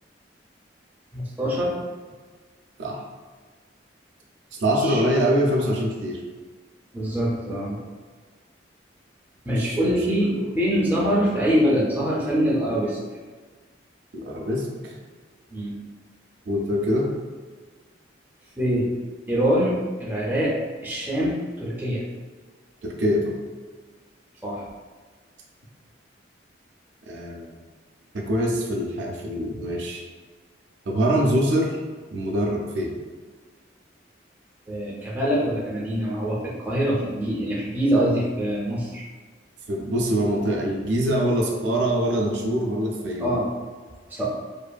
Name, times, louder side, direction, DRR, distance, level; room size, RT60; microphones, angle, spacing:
voice 1, 1.1-1.7 4.8-5.0 6.9-7.8 9.5-13.0 15.5-15.8 18.6-18.9 19.3-20.6 20.8-22.0 24.4-24.6 34.7-36.4 36.6-39.0 43.2-43.5 44.1-44.3, equal, 10° right, -5 dB, 0.4 m, -24 dB
voice 2, 4.5-6.2 9.6-9.8 10.2-10.5 14.1-15.0 16.5-17.1 22.8-23.4 27.1-27.5 28.1-30.1 30.9-31.8 32.1-32.9 39.7-43.3, equal, 70° right, 0 dB, 0.4 m, -24 dB
2.6 x 2.4 x 2.2 m, 1.4 s
head